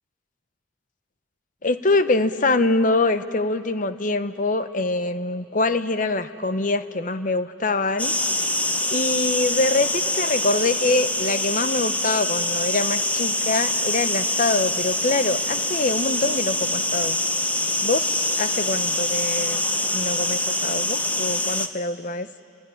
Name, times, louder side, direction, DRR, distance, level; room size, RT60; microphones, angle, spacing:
voice 1, 1.6-8.1 8.9-17.2 17.8-19.6 19.9-22.3, left 2 dB, 40° left, 12 dB, 0.8 m, -24 dB
sound 1, 8.0-21.7, left 1 dB, 5° left, 0.7 m, -24 dB
28.5 x 17.0 x 10.0 m, 2.7 s
head